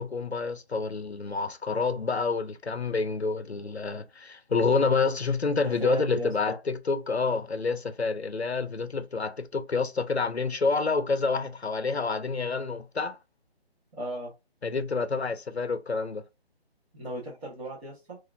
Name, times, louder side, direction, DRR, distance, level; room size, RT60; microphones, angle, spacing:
voice 1, 0.0-13.2 14.6-16.2, left 4 dB, 85° left, 0.8 m, -28 dB
voice 2, 5.6-6.6 13.9-14.3 16.9-18.2, right 2 dB, 10° right, 1.2 m, -35 dB
5.8 x 2.8 x 2.6 m
figure-of-eight pair, 150°, 32 cm